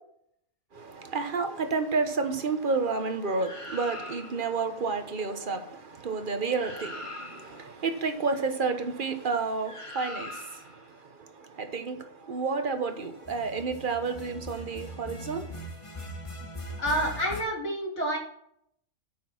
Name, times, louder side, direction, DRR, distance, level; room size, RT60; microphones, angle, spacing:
voice 1, 0.7-15.5, right 4 dB, 40° right, 1.3 m, -31 dB
sound 1, 3.4-4.5 6.2-6.3 6.5-7.7 9.6-10.8 13.1-17.4, left 1 dB, 20° left, 1.6 m, -41 dB
voice 2, 16.8-18.2, right 1 dB, 55° left, 3.5 m, -28 dB
9.1 x 6.4 x 5.9 m
omnidirectional pair, 1.5 m